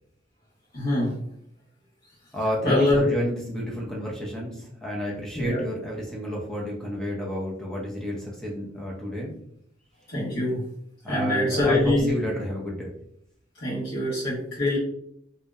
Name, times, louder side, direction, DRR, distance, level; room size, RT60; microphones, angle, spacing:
voice 1, 0.7-1.1 2.6-3.0 5.3-5.6 10.1-10.6 11.1-12.1 13.6-14.8, left 1 dB, 55° left, -11 dB, 1.0 m, -24 dB
voice 2, 2.3-9.3 11.0-12.9, equal, 5° left, -3 dB, 0.5 m, -30 dB
2.6 x 2.0 x 2.3 m, 0.70 s
head